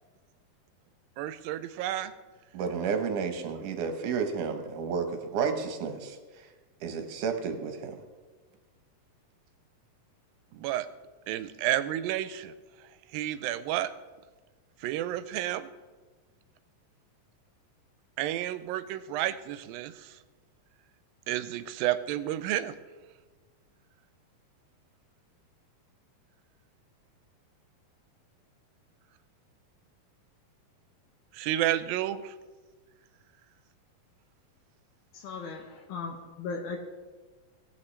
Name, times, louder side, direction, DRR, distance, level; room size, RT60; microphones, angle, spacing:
voice 1, 1.2-2.1 10.5-10.9 11.3-12.5 13.1-13.9 14.8-15.7 18.2-20.1 21.3-22.8 31.3-32.3, right 13 dB, 85° right, 13 dB, 2.3 m, -31 dB
voice 2, 2.5-6.5 6.8-8.0, right 5 dB, 70° right, 6 dB, 2.3 m, -31 dB
voice 3, 35.1-36.8, left 4 dB, 85° left, 0 dB, 2.8 m, -37 dB
18.5 x 8.4 x 3.2 m, 1.3 s
omnidirectional pair, 4.1 m